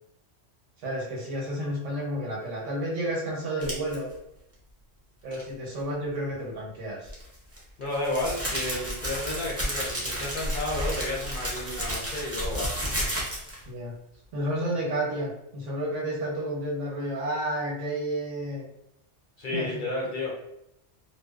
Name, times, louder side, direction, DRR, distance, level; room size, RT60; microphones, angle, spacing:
voice 1, 0.8-4.1 5.2-7.1 13.7-13.9 14.3-18.6 19.5-19.9, right 1 dB, 85° right, -3 dB, 1.1 m, -31 dB
sound 1, 3.6-3.9 7.0-13.6, equal, 20° right, 0.4 m, -32 dB
voice 2, 7.8-12.7 19.4-20.4, left 2 dB, 55° left, -3 dB, 0.6 m, -32 dB
2.6 x 2.0 x 2.3 m, 0.81 s
omnidirectional pair, 1.2 m